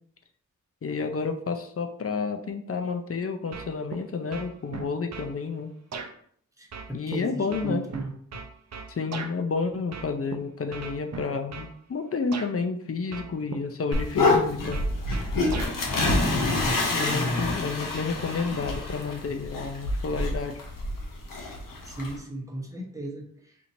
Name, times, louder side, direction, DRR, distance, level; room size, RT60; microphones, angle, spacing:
voice 1, 0.8-5.7 6.9-7.8 8.9-14.8 15.2-15.3 16.9-20.6, left 4 dB, 45° left, 6 dB, 0.6 m, -30 dB
sound 1, 3.5-4.0 4.3-5.3 5.9-6.1 6.7-9.3 9.9-10.4 10.7-11.7 12.3-12.5 13.1-13.6 13.9-15.7, right 5 dB, 55° right, 0.5 m, -38 dB
voice 2, 6.6-8.1 16.6-17.6 21.8-23.6, right 1 dB, 10° right, 0 dB, 0.9 m, -35 dB
sound 2, 13.9-22.2, left 2 dB, 90° left, 0.8 m, -27 dB
4.4 x 2.7 x 2.6 m, 0.63 s
cardioid pair, 50°, 32 cm